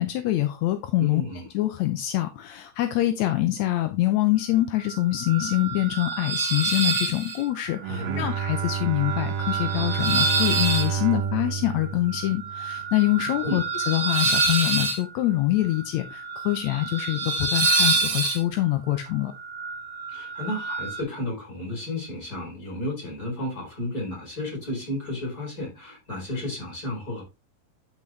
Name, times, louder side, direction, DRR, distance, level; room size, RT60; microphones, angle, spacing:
voice 1, 0.0-1.2 1.5-19.3, left 15 dB, 75° left, 1.7 m, -25 dB
voice 2, 1.0-1.5 7.8-8.4 13.4-13.6 20.1-27.2, left 1 dB, 25° left, 4.6 m, -32 dB
sound 1, 4.8-21.0, right 3 dB, 55° right, 2.5 m, -28 dB
Bowed string instrument, 7.7-13.1, right 7 dB, 85° right, 2.3 m, -30 dB
10.5 x 6.1 x 3.2 m
omnidirectional pair, 3.9 m